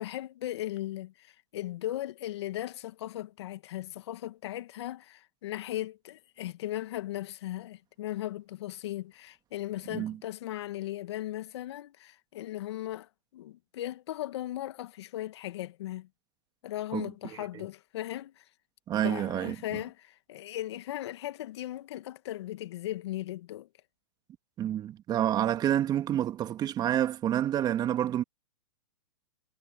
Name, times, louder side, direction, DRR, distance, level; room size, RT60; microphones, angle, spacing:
voice 1, 0.0-16.1 16.6-18.4 19.0-23.7, left 14 dB, 60° left, 2.0 m, -37 dB
voice 2, 18.9-19.6 24.6-28.2, right 11 dB, 25° right, 1.9 m, -28 dB
hypercardioid pair, 120°, 16 cm